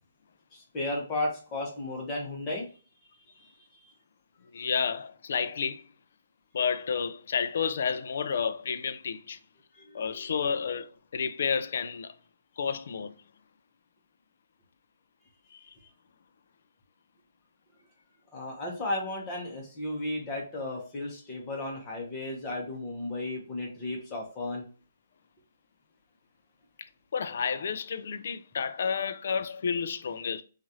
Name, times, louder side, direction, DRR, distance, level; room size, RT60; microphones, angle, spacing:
voice 1, 0.5-2.6 3.4-3.5 3.8-3.9 9.7-10.3 15.8-15.9 18.3-24.6, left 2 dB, 20° left, 0.9 m, -34 dB
voice 2, 4.5-5.8 6.5-9.4 9.9-12.1 12.6-13.2 15.5-15.6 27.1-30.4, left 6 dB, 55° left, 0.3 m, -31 dB
3.0 x 2.4 x 2.7 m
hypercardioid pair, 170°, 0 cm